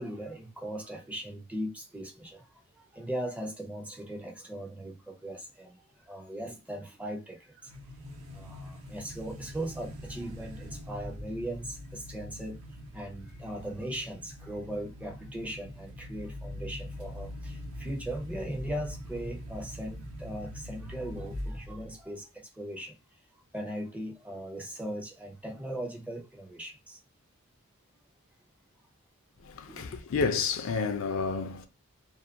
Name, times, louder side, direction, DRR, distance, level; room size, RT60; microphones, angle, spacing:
voice 1, 0.0-2.5 2.9-5.8 6.1-7.7 8.3-12.6 12.9-23.0 23.5-27.0 29.7-29.9, right 1 dB, 5° right, 0.4 m, -39 dB
sound 1, 7.7-21.9, left 1 dB, 70° right, 0.7 m, -42 dB
voice 2, 29.4-31.7, left 5 dB, 60° left, 0.4 m, -30 dB
2.3 x 2.2 x 2.6 m
head